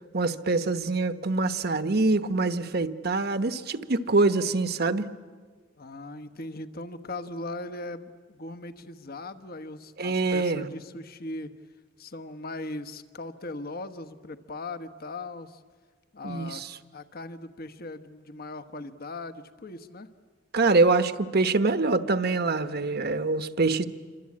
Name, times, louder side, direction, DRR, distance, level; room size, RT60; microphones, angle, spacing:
voice 1, 0.1-5.0 10.0-10.7 16.2-16.7 20.5-23.9, right 3 dB, 55° right, 10 dB, 1.1 m, -25 dB
voice 2, 5.8-11.5 12.0-15.6 16.1-16.6 16.9-20.1, left 2 dB, 50° left, 10 dB, 1.3 m, -39 dB
28.0 x 24.5 x 8.6 m, 1.5 s
head